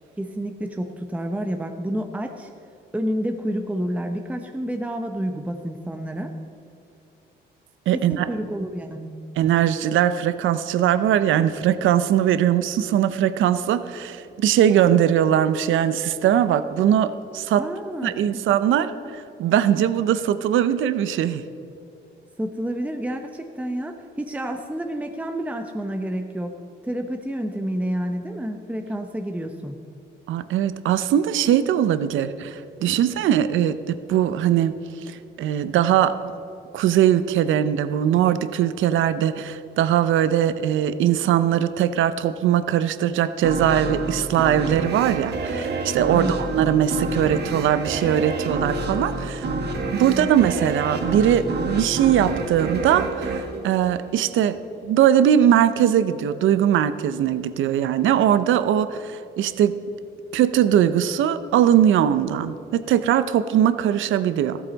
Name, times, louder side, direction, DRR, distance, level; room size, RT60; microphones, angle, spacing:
voice 1, 0.2-2.5 2.9-6.3 7.9-9.1 17.6-18.4 22.4-26.5 26.8-29.8 46.1-46.4 50.0-50.3, right 1 dB, 5° right, 5 dB, 0.8 m, -29 dB
voice 2, 7.9-8.3 9.4-17.6 18.0-21.4 30.3-34.7 35.1-36.2 36.7-49.5 49.9-54.6 54.8-59.7 60.3-64.6, right 10 dB, 80° right, 13 dB, 0.6 m, -20 dB
sound 1, 43.4-54.6, right 2 dB, 55° right, 1.6 m, -28 dB
14.5 x 13.0 x 4.0 m, 2.8 s
cardioid pair, 90°, 20 cm